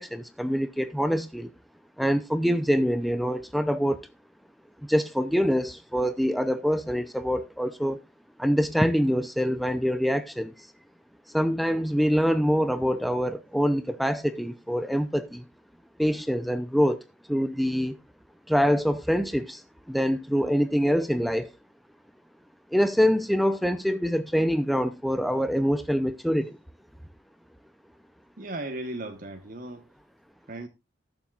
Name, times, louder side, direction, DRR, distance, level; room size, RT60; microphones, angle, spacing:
voice 1, 0.0-1.5 2.0-4.1 4.9-8.0 8.4-10.7 11.3-15.4 16.0-17.0 17.3-18.0 18.5-21.5 22.7-26.6, equal, ahead, 0.5 m, -25 dB
voice 2, 28.4-29.9 30.5-30.7, right 1 dB, 45° right, 1.2 m, -36 dB
19.0 x 7.1 x 2.4 m
head